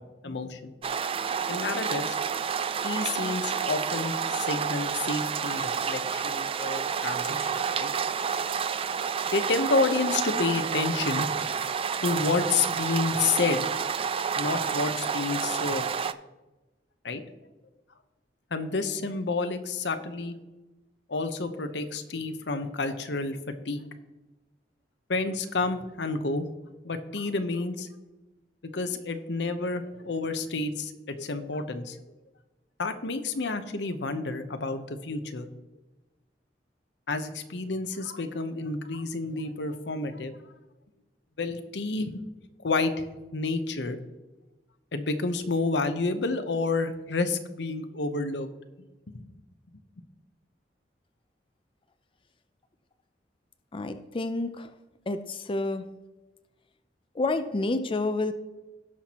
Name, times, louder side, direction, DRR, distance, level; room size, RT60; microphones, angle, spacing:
voice 1, 0.2-0.7 1.5-2.2 2.8-7.9 9.3-11.5 12.0-13.7 14.4-15.8 17.0-17.2 18.5-20.4 21.1-23.8 25.1-26.4 26.8-27.9 28.7-32.0 32.8-35.5 37.1-40.3 41.4-42.2 42.6-43.1 43.3-44.0 44.9-48.5 49.1-49.3, left 3 dB, 80° left, 9 dB, 0.9 m, -29 dB
sound 1, 0.8-16.1, right 6 dB, 35° right, 0.4 m, -29 dB
voice 2, 53.7-54.7 55.1-55.8 57.2-58.3, left 2 dB, 30° left, 9 dB, 0.5 m, -29 dB
17.5 x 5.9 x 3.0 m, 1.1 s
head